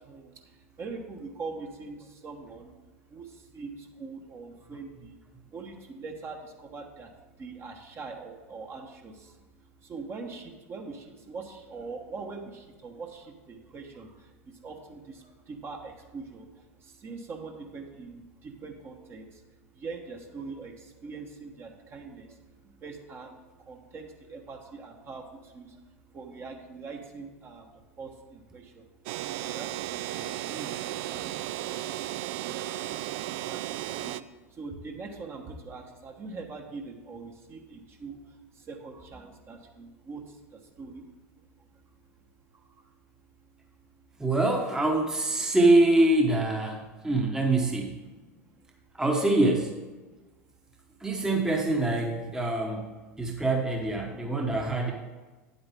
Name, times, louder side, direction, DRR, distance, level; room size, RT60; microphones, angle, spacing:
voice 1, 0.8-2.0 2.2-2.7 3.1-3.2 3.5-5.1 5.5-6.4 6.7-7.1 7.4-9.1 9.9-10.4 10.7-12.4 12.8-13.2 13.5-14.1 14.6-15.0 15.5-16.4 17.0-18.2 18.6-19.2 19.8-20.7 21.0-22.3 22.8-23.4 23.7-25.2 25.5-25.7 26.1-27.6 28.0-28.1 28.5-28.6 29.4-29.7 30.1-30.7 31.1-31.2 33.5-33.6 34.0-34.2 34.6-38.2 38.7-40.2 40.8-41.0, right 4 dB, 30° right, 3 dB, 1.2 m, -41 dB
sound 1, 29.1-34.2, right 13 dB, 60° right, 0.3 m, -34 dB
voice 2, 44.2-48.0 48.9-49.7 51.0-52.9 53.2-54.9, right 2 dB, 10° right, 1 dB, 1.1 m, -24 dB
8.9 x 8.1 x 3.6 m, 1.2 s
figure-of-eight pair, 80°, 8 cm